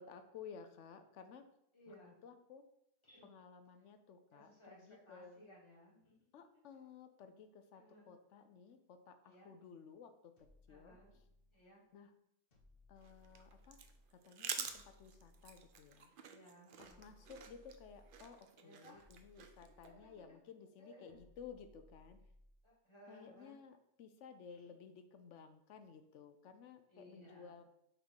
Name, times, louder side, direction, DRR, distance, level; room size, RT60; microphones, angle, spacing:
voice 1, 0.0-1.4 1.9-2.0 2.2-2.6 3.2-5.4 6.3-10.3 10.7-11.2 11.9-12.1 12.9-13.8 14.1-16.1 16.8-22.2 23.1-27.6, left 6 dB, 65° left, 8 dB, 0.8 m, -56 dB
voice 2, 1.7-2.2 3.0-3.3 4.3-6.8 7.7-8.1 9.2-9.5 10.7-11.2 11.5-11.8 16.3-17.2 18.6-19.0 19.7-20.4 20.8-21.2 22.6-23.6 24.6-24.7 26.9-27.5, equal, 20° left, -6 dB, 2.2 m, -61 dB
sound 1, 10.4-11.7 12.5-14.1 14.6-16.1 16.8-18.4 18.9-20.3 21.1-22.7, left 2 dB, 40° left, 1.3 m, -65 dB
sound 2, 13.0-19.9, right 6 dB, 55° right, 0.6 m, -49 dB
5.8 x 3.6 x 5.5 m, 0.80 s
omnidirectional pair, 1.4 m